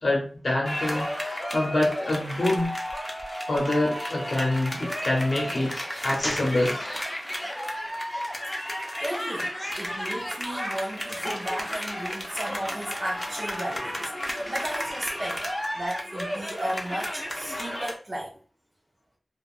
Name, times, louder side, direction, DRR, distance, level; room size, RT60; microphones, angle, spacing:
voice 1, 0.0-2.7 3.5-7.2 9.4-9.8 11.6-11.7 14.4-14.5, left 1 dB, 60° left, 0.7 m, -26 dB
sound 1, 0.7-17.9, equal, 15° left, 0.7 m, -33 dB
voice 2, 9.0-15.4 15.7-18.4, right 1 dB, 45° right, 0.6 m, -34 dB
2.9 x 2.2 x 2.4 m
wide cardioid pair, 65°, 0 cm